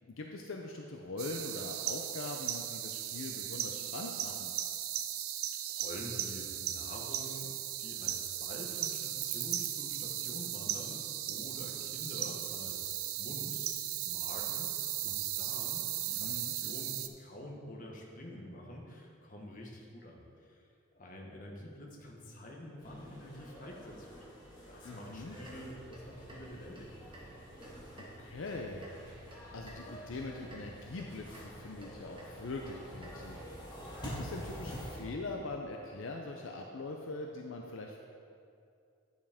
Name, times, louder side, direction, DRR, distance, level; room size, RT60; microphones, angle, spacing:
voice 1, 0.1-4.5 16.2-16.6 24.8-25.4 28.0-28.9 29.5-33.4 34.0-38.0, left 2 dB, 65° left, 1 dB, 0.6 m, -42 dB
sound 1, 1.2-17.1, right 12 dB, 90° right, 0.4 m, -37 dB
voice 2, 5.7-13.7 14.0-14.7 15.0-20.6 20.9-24.2 24.7-27.0, equal, 40° left, 0 dB, 1.1 m, -47 dB
sound 2, 22.8-35.0, equal, 20° left, 1.8 m, -48 dB
sound 3, 25.2-33.3, right 1 dB, 25° right, 1.3 m, -53 dB
9.5 x 7.3 x 3.5 m, 2.5 s
head